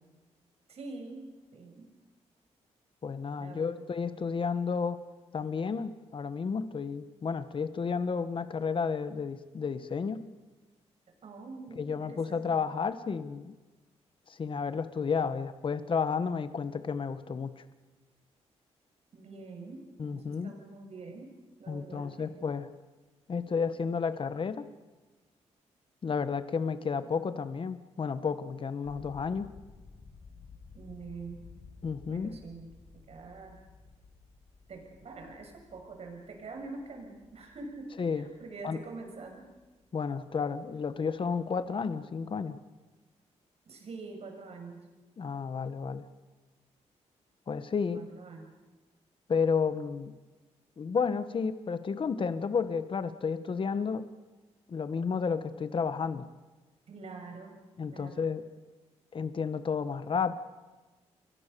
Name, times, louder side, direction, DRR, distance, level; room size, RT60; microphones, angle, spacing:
voice 1, 0.7-1.9 3.4-3.8 11.2-12.6 19.1-19.8 20.1-21.3 21.6-22.4 30.7-31.4 32.1-33.6 34.7-39.5 43.6-44.9 47.9-48.5 56.9-57.6 57.9-58.2, right 3 dB, 60° right, 3 dB, 6.9 m, -45 dB
voice 2, 3.0-5.0 5.3-10.3 11.7-13.5 14.3-17.6 20.0-20.5 21.7-22.7 23.3-24.6 26.0-29.5 31.8-32.4 38.0-38.3 38.6-38.8 39.9-42.6 45.2-46.1 47.5-48.0 49.3-50.1 50.8-54.1 54.7-56.3 57.8-58.4 59.1-60.3, left 5 dB, 45° left, 12 dB, 1.4 m, -32 dB
sound 1, 28.8-40.7 41.0-41.3 41.7-41.9, left 4 dB, 75° left, 4.2 m, -55 dB
30.0 x 23.0 x 6.9 m, 1.2 s
cardioid pair, 95°, 12 cm